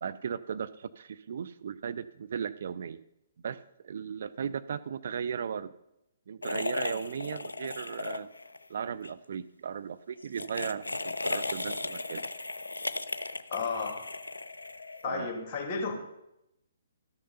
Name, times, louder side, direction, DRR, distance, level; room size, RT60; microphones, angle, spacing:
voice 1, 0.0-3.0 3.4-5.7 6.3-8.3 8.7-12.2 15.0-15.3, right 7 dB, 50° right, 13 dB, 0.4 m, -36 dB
sound 1, 6.4-8.6 8.9-9.1 10.2-15.2, left 2 dB, 75° left, 0.5 m, -36 dB
voice 2, 13.5-14.1 15.0-15.9, left 5 dB, 25° left, 2 dB, 2.7 m, -33 dB
13.0 x 6.7 x 5.5 m, 0.86 s
figure-of-eight pair, 125°, 0 cm